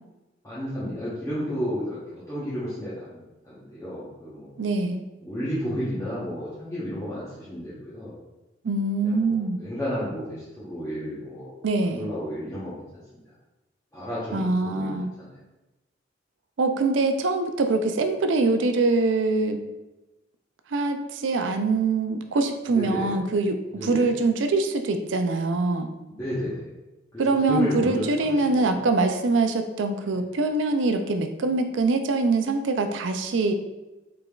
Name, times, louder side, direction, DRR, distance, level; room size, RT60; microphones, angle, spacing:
voice 1, 0.4-4.5 5.2-8.2 9.0-11.5 11.9-12.7 13.9-15.3 22.7-23.2 23.7-24.1 26.1-26.7 27.1-28.8 30.0-30.1, equal, 15° left, -11 dB, 0.9 m, -32 dB
voice 2, 4.6-5.0 8.6-9.6 11.6-12.1 14.3-15.1 16.6-19.6 20.7-23.6 23.8-25.9 27.2-33.5, right 3 dB, 90° right, 7 dB, 0.4 m, -24 dB
4.9 x 3.5 x 2.4 m, 1.0 s
head